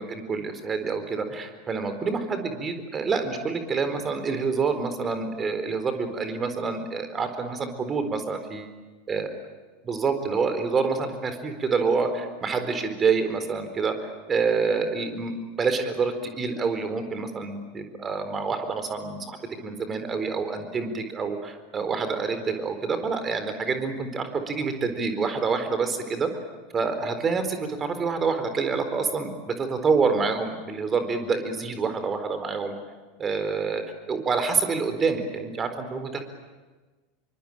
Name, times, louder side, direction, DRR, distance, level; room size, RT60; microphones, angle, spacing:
voice 1, 0.0-8.7 9.1-9.3 9.8-19.4 19.6-26.3 26.7-32.7 33.2-36.2, right 4 dB, 25° right, 8 dB, 4.2 m, -27 dB
27.5 x 24.0 x 8.9 m, 1.3 s
figure-of-eight pair, 80°, 0 cm